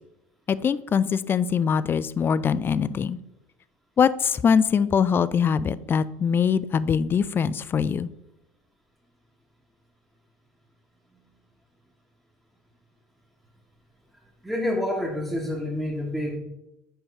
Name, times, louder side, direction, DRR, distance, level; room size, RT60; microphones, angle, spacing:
voice 1, 0.5-3.2 4.0-8.1, left 7 dB, 30° left, 17 dB, 0.4 m, -23 dB
voice 2, 14.4-16.4, left 1 dB, ahead, -5 dB, 1.5 m, -28 dB
7.1 x 5.3 x 3.4 m, 0.89 s
hypercardioid pair, 85°, 7 cm